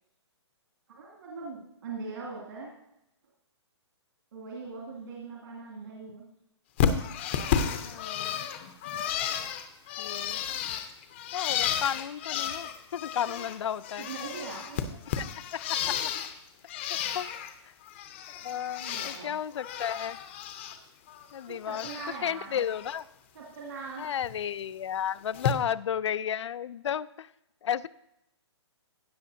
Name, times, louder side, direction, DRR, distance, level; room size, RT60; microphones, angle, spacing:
voice 1, 0.9-2.8 4.3-6.2 14.0-14.9 18.8-19.3 21.4-22.6 23.3-24.1, right 4 dB, 60° right, -5 dB, 2.6 m, -41 dB
Bird, 6.8-13.6 13.8-16.3 16.7-17.5 17.9-19.2 19.5-20.8 21.1-22.1 22.5-22.9 24.2-24.3 25.3-25.5, left 8 dB, 25° left, 0.6 m, -32 dB
voice 2, 7.9-8.4 10.0-10.4 11.3-14.1 15.2-16.1 16.9-17.3 18.3-20.2 21.3-21.9 22.2-23.0 24.0-27.3 27.6-27.9, left 9 dB, 75° left, 17 dB, 0.4 m, -33 dB
15.5 x 7.6 x 2.7 m, 0.84 s
hypercardioid pair, 170°, 15 cm